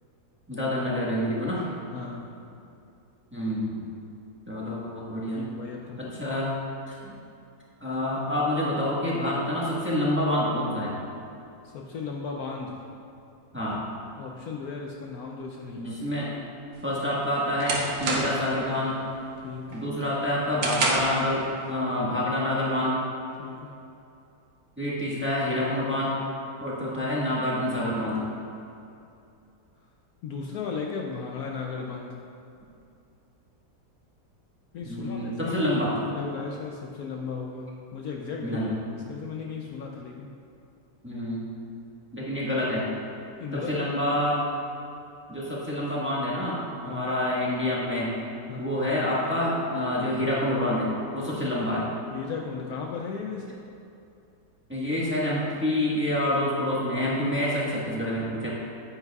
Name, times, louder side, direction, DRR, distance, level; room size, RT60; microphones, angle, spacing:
voice 1, 0.5-1.7 3.3-3.8 4.5-5.4 6.0-6.5 6.9-7.1 7.8-10.9 13.5-13.8 15.8-16.3 16.8-19.0 19.7-23.0 24.8-26.2 26.6-28.2 34.8-35.9 38.4-38.7 41.0-41.4 42.1-42.9 43.5-44.4 45.3-48.1 48.6-51.8 54.7-58.5, left 1 dB, 5° right, -7 dB, 1.3 m, -27 dB
voice 2, 1.9-2.4 5.4-6.2 11.6-12.9 14.2-16.0 19.4-19.8 23.4-23.8 30.2-32.2 34.7-35.7 36.0-40.4 43.4-43.9 46.8-47.0 48.5-48.8 52.1-53.6, left 5 dB, 70° left, 0 dB, 1.0 m, -36 dB
sound 1, 16.8-18.6 19.0-19.3 19.7-21.3, right 2 dB, 70° right, 1.6 m, -28 dB
9.7 x 8.8 x 2.4 m, 2.6 s
omnidirectional pair, 1.8 m